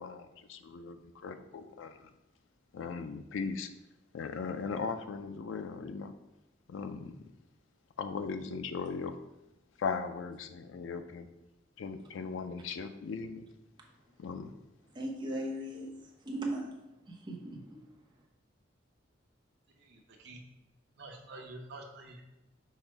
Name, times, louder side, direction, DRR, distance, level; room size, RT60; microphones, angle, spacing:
voice 1, 0.0-2.1 2.7-3.7 4.1-6.1 6.7-7.2 8.0-9.2 9.8-11.3 11.8-13.4 14.2-14.5, left 5 dB, 85° left, 9 dB, 0.4 m, -38 dB
voice 2, 14.9-15.9 16.2-16.7 17.1-17.8, right 1 dB, 25° right, -1 dB, 0.7 m, -37 dB
voice 3, 19.9-20.4 21.0-22.2, right 2 dB, 65° right, 1 dB, 0.8 m, -47 dB
5.5 x 2.1 x 4.4 m, 0.93 s
head